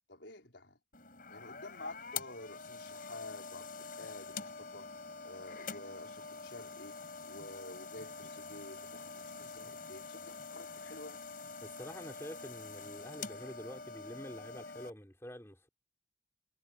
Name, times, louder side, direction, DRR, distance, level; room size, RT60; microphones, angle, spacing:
voice 1, 0.1-0.8 1.3-4.9 5.2-7.0 7.2-11.2, left 2 dB, 70° left, 4.8 m, -50 dB
sound 1, 0.9-14.9, left 4 dB, 45° left, 6.5 m, -46 dB
voice 2, 11.6-15.7, equal, 15° left, 5.6 m, -47 dB
head